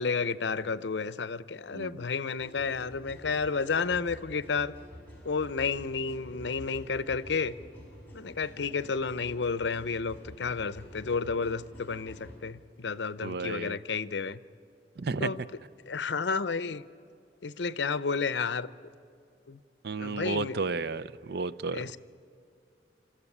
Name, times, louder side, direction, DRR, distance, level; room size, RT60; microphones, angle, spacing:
voice 1, 0.0-4.7 5.2-7.5 8.1-14.4 15.2-15.4 15.9-16.8 17.4-18.7 19.5-19.6 20.0-20.6 21.7-22.0, left 5 dB, 75° left, 16 dB, 0.6 m, -31 dB
voice 2, 1.7-2.1 13.2-13.8 15.0-15.3 19.8-21.8, right 4 dB, 65° right, 16 dB, 0.6 m, -33 dB
sound 1, 2.4-12.4, equal, 10° left, 5.5 m, -48 dB
29.0 x 13.5 x 9.8 m, 2.5 s
head